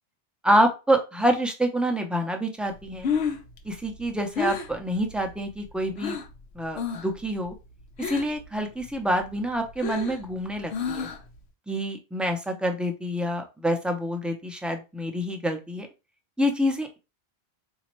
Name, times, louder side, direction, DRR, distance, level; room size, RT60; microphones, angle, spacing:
voice 1, 0.4-3.1 3.6-6.2 6.5-7.5 8.0-11.1 11.7-15.9 16.4-17.0, equal, ahead, 4 dB, 0.3 m, -27 dB
Breathing, 2.8-6.4 6.7-7.2 7.4-8.5 8.8-11.4, left 6 dB, 85° left, 1.0 m, -31 dB
4.1 x 2.8 x 3.0 m, 0.28 s
omnidirectional pair, 1.1 m